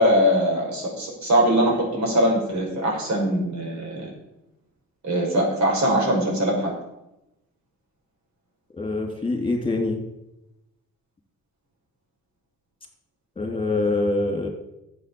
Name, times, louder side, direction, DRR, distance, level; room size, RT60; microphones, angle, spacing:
voice 1, 0.0-4.1 5.0-6.7, equal, 65° right, -1 dB, 5.7 m, -21 dB
voice 2, 8.8-10.0 13.4-14.5, left 2 dB, 15° left, 2 dB, 3.3 m, -24 dB
11.5 x 7.8 x 7.1 m, 0.90 s
cardioid pair, 90°, 30 cm